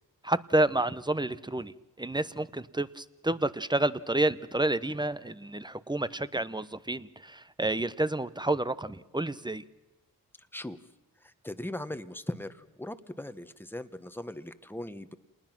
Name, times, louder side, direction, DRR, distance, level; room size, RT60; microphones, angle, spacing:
voice 1, 0.2-9.6, right 2 dB, 10° right, 15 dB, 0.9 m, -29 dB
voice 2, 11.2-15.1, left 1 dB, 5° left, 11 dB, 1.2 m, -39 dB
28.0 x 20.0 x 6.1 m, 1.0 s
cardioid pair, 50°, 37 cm